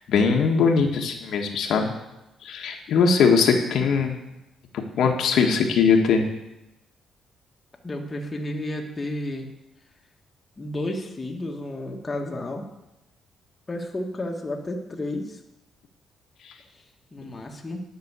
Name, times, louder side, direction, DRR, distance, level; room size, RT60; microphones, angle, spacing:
voice 1, 0.1-1.9 2.4-4.1 5.0-6.2, left 5 dB, 75° left, 2 dB, 1.4 m, -20 dB
voice 2, 7.8-9.5 10.6-12.7 13.7-15.4 17.1-17.8, left 1 dB, 25° left, 1 dB, 1.5 m, -32 dB
10.5 x 6.1 x 8.3 m, 0.94 s
cardioid pair, 125°, 0 cm